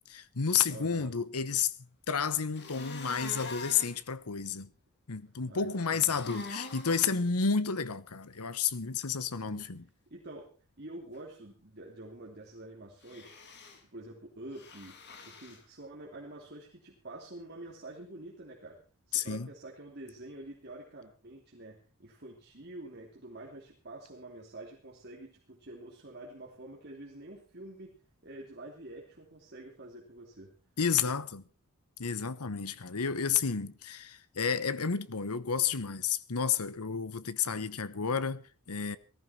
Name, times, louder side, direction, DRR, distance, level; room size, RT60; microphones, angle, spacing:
voice 1, 0.1-1.7 2.1-4.7 5.1-9.9 19.1-19.5 30.8-31.4 32.0-39.0, left 6 dB, 85° left, 1.1 m, -31 dB
voice 2, 0.7-1.1 5.4-6.2 9.4-9.6 10.1-13.4 13.9-15.0 15.2-18.8 19.1-28.0 28.2-30.5, right 2 dB, 50° right, 3.0 m, -47 dB
sound 1, 2.5-4.0 5.8-7.2 13.0-13.8 14.5-15.6, left 3 dB, 50° left, 3.0 m, -44 dB
18.5 x 14.5 x 4.4 m
head